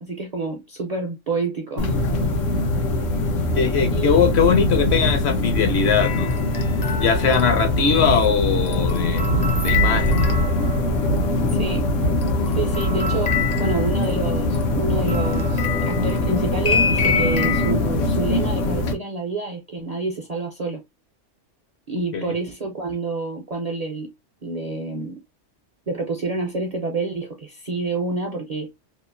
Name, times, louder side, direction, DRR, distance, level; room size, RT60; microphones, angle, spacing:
voice 1, 0.0-2.0 3.9-4.6 11.5-11.9 12.6-20.8 21.9-24.1 24.4-25.2 25.9-28.7, right 3 dB, 45° right, 0.5 m, -28 dB
sound 1, 1.8-18.9, left 1 dB, 85° left, 1.1 m, -22 dB
voice 2, 3.5-6.4 7.0-10.3 22.1-22.3, left 6 dB, 65° left, 0.9 m, -21 dB
sound 2, 6.0-11.0 12.2-17.7, left 6 dB, 45° left, 0.5 m, -28 dB
2.9 x 2.4 x 2.4 m
omnidirectional pair, 1.3 m